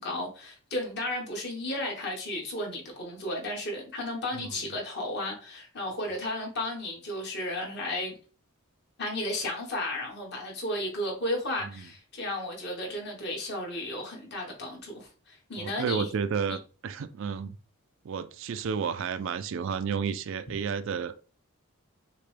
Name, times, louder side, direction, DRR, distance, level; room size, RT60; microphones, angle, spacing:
voice 1, 0.0-8.2 9.0-16.6, left 1 dB, 50° left, 1.5 m, -34 dB
voice 2, 15.6-17.6 18.0-21.2, right 6 dB, 60° right, 0.3 m, -31 dB
6.5 x 2.2 x 3.3 m
head